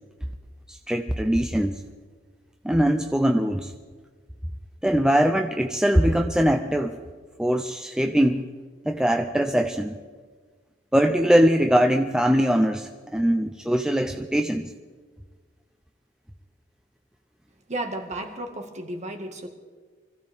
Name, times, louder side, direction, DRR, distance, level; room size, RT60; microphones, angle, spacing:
voice 1, 0.7-1.8 2.6-3.7 4.8-7.0 7.4-8.4 8.9-10.0 10.9-14.7, equal, 5° right, 0.5 m, -22 dB
voice 2, 17.7-19.5, right 1 dB, 40° right, 1.8 m, -33 dB
25.0 x 15.5 x 3.6 m
head